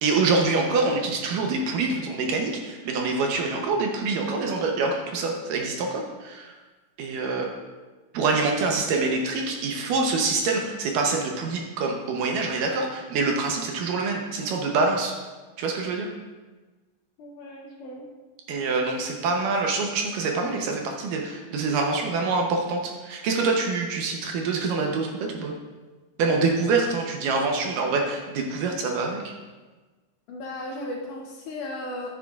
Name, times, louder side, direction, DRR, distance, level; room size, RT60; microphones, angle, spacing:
voice 1, 0.0-6.5 7.0-7.5 8.1-15.1 15.6-16.1 18.5-25.5 26.2-29.3, right 3 dB, 75° right, 1 dB, 2.2 m, -25 dB
voice 2, 17.2-18.1 30.3-32.1, left 1 dB, 70° left, -1 dB, 2.0 m, -36 dB
11.0 x 9.1 x 2.4 m, 1.3 s
omnidirectional pair, 4.2 m